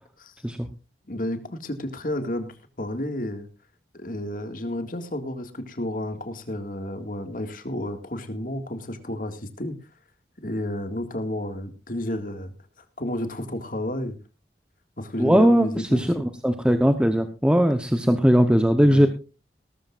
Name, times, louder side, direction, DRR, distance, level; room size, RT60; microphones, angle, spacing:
voice 1, 1.1-3.5 3.9-9.8 10.4-12.5 13.0-14.2 15.0-16.3 18.8-19.0, left 1 dB, 50° left, 7 dB, 2.1 m, -31 dB
voice 2, 15.2-19.1, equal, 5° right, 7 dB, 0.9 m, -19 dB
18.5 x 13.5 x 2.5 m, 0.30 s
head